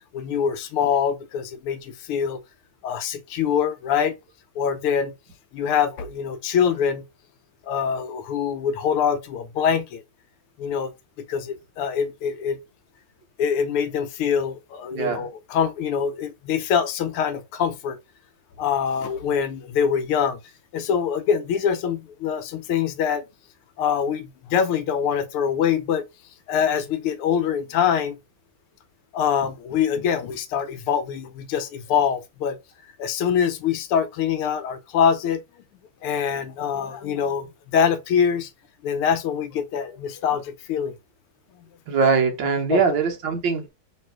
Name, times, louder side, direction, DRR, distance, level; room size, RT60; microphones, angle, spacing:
voice 1, 0.1-2.4 2.8-4.1 4.6-5.1 5.5-7.0 7.7-10.0 10.6-10.9 11.3-12.6 13.4-18.0 18.6-20.4 20.7-23.2 23.8-26.1 26.5-28.2 29.1-32.6 33.0-35.4 36.0-37.5 37.7-38.5 38.8-40.9 42.7-42.8, left 7 dB, 90° left, 1.7 m, -24 dB
voice 2, 14.9-15.3 41.9-43.7, right 5 dB, 65° right, 1.6 m, -22 dB
3.8 x 3.1 x 4.5 m
omnidirectional pair, 2.4 m